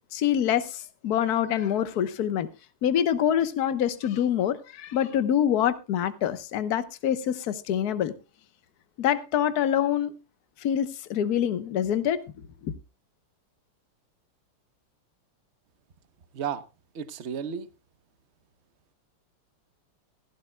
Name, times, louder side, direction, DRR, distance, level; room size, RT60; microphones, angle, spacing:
voice 1, 0.1-2.5 2.8-8.1 9.0-10.1 10.6-12.2 12.6-12.7, left 9 dB, 50° left, 1.4 m, -25 dB
voice 2, 16.9-17.7, right 7 dB, 45° right, 0.9 m, -32 dB
16.0 x 15.5 x 2.2 m
omnidirectional pair, 2.4 m